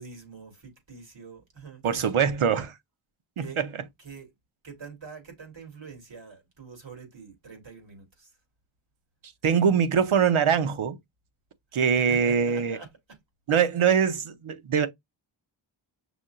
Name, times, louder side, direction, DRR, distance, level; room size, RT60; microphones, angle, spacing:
voice 1, 0.0-1.8 2.5-2.6 3.4-3.6 4.0-4.3 4.6-8.4 12.0-13.2, right 5 dB, 65° right, 3.0 m, -45 dB
voice 2, 1.8-2.7 3.4-3.6 9.4-11.0 11.7-12.8 13.5-14.9, right 7 dB, 85° right, 0.9 m, -23 dB
6.1 x 2.7 x 2.5 m
wide cardioid pair, 110°, 49 cm